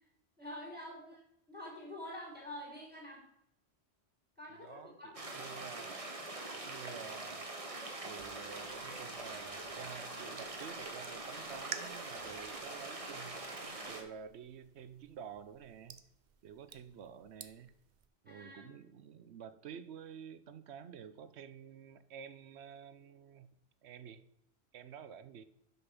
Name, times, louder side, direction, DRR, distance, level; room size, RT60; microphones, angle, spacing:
voice 1, 0.4-1.2 1.5-3.2 4.4-5.2 18.3-18.7, left 1 dB, 10° right, -4 dB, 3.3 m, -47 dB
voice 2, 4.5-6.0 6.5-7.5 8.0-16.0 16.4-17.7 18.2-23.5 23.8-24.2 24.7-25.4, right 8 dB, 80° right, 12 dB, 0.9 m, -50 dB
sound 1, 5.1-14.0, right 2 dB, 35° right, 1.2 m, -44 dB
sound 2, 8.2-18.1, right 7 dB, 50° right, 0.7 m, -53 dB
6.5 x 6.0 x 6.0 m, 0.78 s
omnidirectional pair, 1.1 m